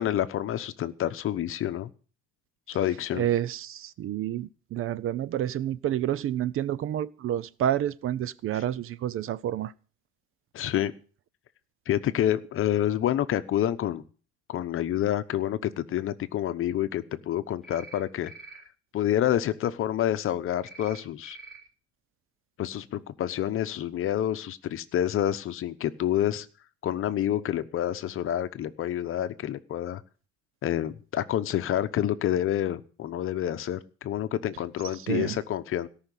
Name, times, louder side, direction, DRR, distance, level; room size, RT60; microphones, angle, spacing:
voice 1, 0.0-1.9 2.7-3.3 8.5-8.6 10.5-10.9 11.9-14.0 14.5-18.6 18.9-21.4 22.6-26.5 26.8-30.0 30.6-35.9, left 11 dB, 45° left, 1.0 m, -28 dB
voice 2, 3.1-9.7 35.1-35.4, right 11 dB, 45° right, 0.6 m, -29 dB
sound 1, 17.6-18.0 18.2-18.6 20.6-21.0 21.2-21.6, right 3 dB, ahead, 6.8 m, -46 dB
17.5 x 5.9 x 10.0 m
cardioid pair, 160°, 30 cm